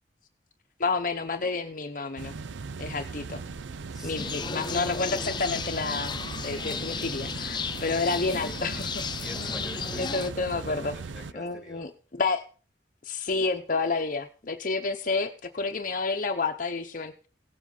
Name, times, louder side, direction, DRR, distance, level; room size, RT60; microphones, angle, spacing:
voice 1, 0.8-2.3 2.8-3.4 4.0-6.1 6.4-9.0 10.0-10.9 11.3-12.4 13.0-17.3, left 3 dB, 45° left, 5 dB, 0.9 m, -30 dB
sound 1, 2.2-11.3, right 4 dB, 90° right, 0.5 m, -39 dB
voice 2, 3.9-4.4 9.2-11.8, equal, 5° right, 3 dB, 2.4 m, -46 dB
sound 2, 4.2-10.3, left 5 dB, 25° left, 0.6 m, -34 dB
17.0 x 7.5 x 5.4 m, 0.38 s
head